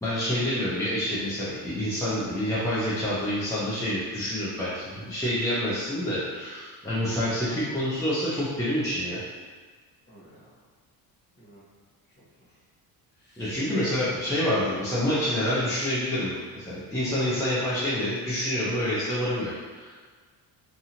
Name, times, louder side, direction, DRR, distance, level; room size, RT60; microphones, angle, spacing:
voice 1, 0.0-9.2 13.4-19.9, left 1 dB, 10° left, -11 dB, 0.6 m, -27 dB
voice 2, 10.1-10.5 11.3-11.7 12.2-12.6 13.1-13.5 17.2-17.6, right 1 dB, 25° left, -8 dB, 1.1 m, -52 dB
2.7 x 2.6 x 2.8 m, 1.5 s
cardioid pair, 125°, 39 cm